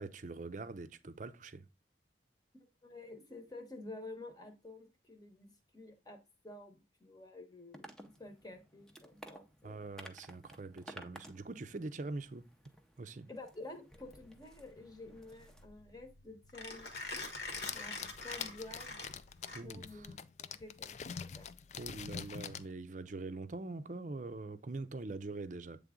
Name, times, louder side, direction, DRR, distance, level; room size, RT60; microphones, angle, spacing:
voice 1, 0.0-1.6 9.6-12.4 13.0-13.3 19.5-20.1 21.8-25.8, right 3 dB, 40° right, 0.6 m, -43 dB
voice 2, 2.5-6.2 6.4-9.9 13.3-17.2 17.7-19.0 19.5-21.5, left 2 dB, 20° left, 1.1 m, -50 dB
sound 1, 7.7-15.6, right 1 dB, 5° left, 0.6 m, -56 dB
Mechanisms, 13.9-20.0, left 3 dB, 60° left, 1.4 m, -45 dB
sound 2, 17.4-22.7, left 7 dB, 40° left, 0.3 m, -45 dB
8.3 x 3.5 x 3.7 m
head